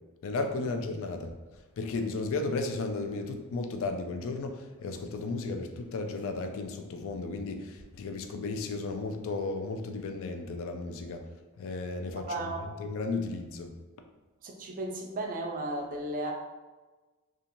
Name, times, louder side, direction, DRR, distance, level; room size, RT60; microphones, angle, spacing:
voice 1, 0.2-1.3 1.8-11.2 11.6-13.7, left 3 dB, 60° left, 5 dB, 0.4 m, -34 dB
voice 2, 12.2-12.6 14.4-16.3, right 2 dB, 40° right, 1 dB, 0.4 m, -34 dB
2.9 x 2.4 x 2.6 m, 1.2 s
head